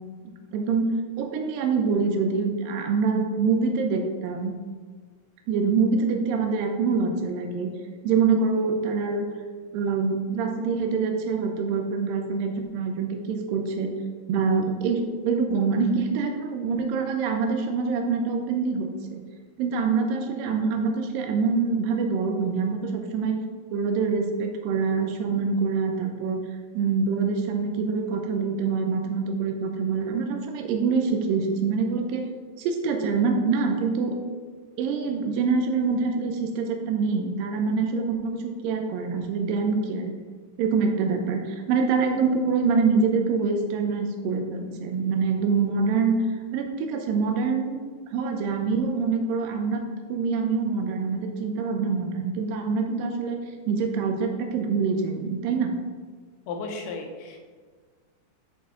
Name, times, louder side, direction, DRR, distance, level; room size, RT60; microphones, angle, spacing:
voice 1, 0.2-4.5 5.5-7.7 8.0-9.3 9.7-13.9 14.3-19.2 19.6-23.4 23.7-26.4 26.7-32.3 32.6-34.2 34.8-40.1 40.6-47.8 48.1-49.8 50.1-53.4 53.7-55.7, right 5 dB, 85° right, 4 dB, 2.3 m, -25 dB
voice 2, 56.5-57.4, left 3 dB, 85° left, 2 dB, 2.5 m, -34 dB
8.6 x 4.1 x 3.6 m, 1.5 s
omnidirectional pair, 3.9 m